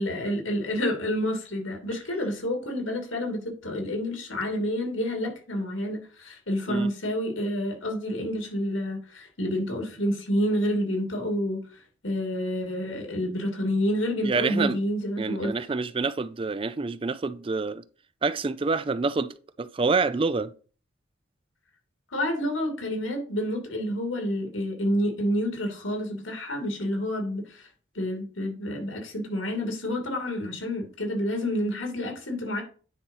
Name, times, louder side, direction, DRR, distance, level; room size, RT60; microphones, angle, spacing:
voice 1, 0.0-15.5 22.1-27.7 27.9-32.6, equal, 85° left, 2.8 m, -29 dB
voice 2, 14.2-14.8 15.2-17.8 18.2-20.5, right 4 dB, 25° right, 0.4 m, -27 dB
9.5 x 4.3 x 5.5 m
head